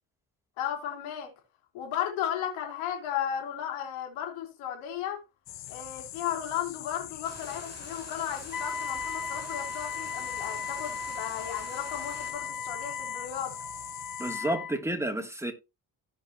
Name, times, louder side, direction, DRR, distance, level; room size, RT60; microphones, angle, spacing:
voice 1, 0.6-1.3 1.7-5.2 5.7-13.5, left 10 dB, 80° left, 3.3 m, -35 dB
sound 1, 5.5-14.4, left 13 dB, 60° left, 1.1 m, -43 dB
sound 2, 7.2-12.3, right 3 dB, 30° right, 5.1 m, -48 dB
Wind instrument woodwind instrument, 8.5-14.8, left 6 dB, 40° left, 2.2 m, -37 dB
voice 2, 14.2-15.5, right 1 dB, 5° right, 2.6 m, -30 dB
15.5 x 5.3 x 2.9 m
hypercardioid pair, 50°, 48 cm